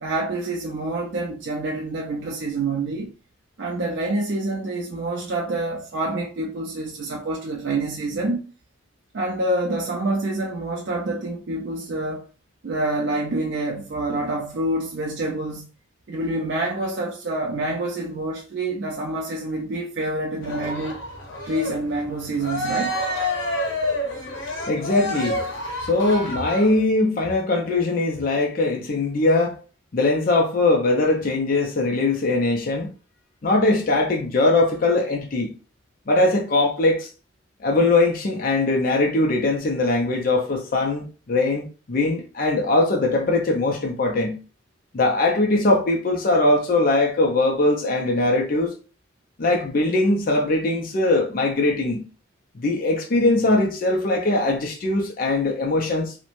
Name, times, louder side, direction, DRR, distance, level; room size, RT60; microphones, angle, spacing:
voice 1, 0.0-3.1 3.6-8.5 9.1-12.2 12.6-15.7 16.1-21.0 21.5-23.0, right 2 dB, 60° right, 0.4 m, -27 dB
Cheering, 20.4-26.8, left 1 dB, 70° left, 0.8 m, -28 dB
voice 2, 24.7-25.4 25.8-29.6 29.9-32.9 33.4-35.5 36.1-37.1 37.6-44.4 44.9-48.7 49.4-52.0 52.5-56.1, left 2 dB, 45° left, 0.4 m, -21 dB
3.0 x 2.1 x 2.5 m
head